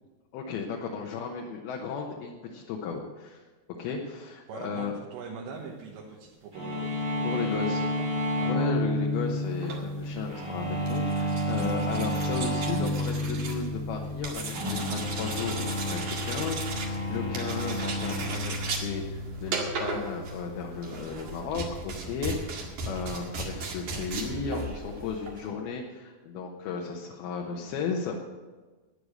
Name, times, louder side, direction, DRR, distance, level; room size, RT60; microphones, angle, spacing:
voice 1, 0.3-3.4 3.8-4.9 7.2-7.8 8.5-28.2, left 5 dB, 70° left, 0 dB, 2.7 m, -35 dB
voice 2, 4.5-8.1 8.4-8.5, right 5 dB, 85° right, -2 dB, 3.7 m, -42 dB
sound 1, 6.5-21.0, left 1 dB, 25° right, 2.1 m, -31 dB
sound 2, 9.5-25.5, right 3 dB, 55° right, 3.1 m, -37 dB
12.5 x 9.9 x 6.5 m, 1.3 s
omnidirectional pair, 5.0 m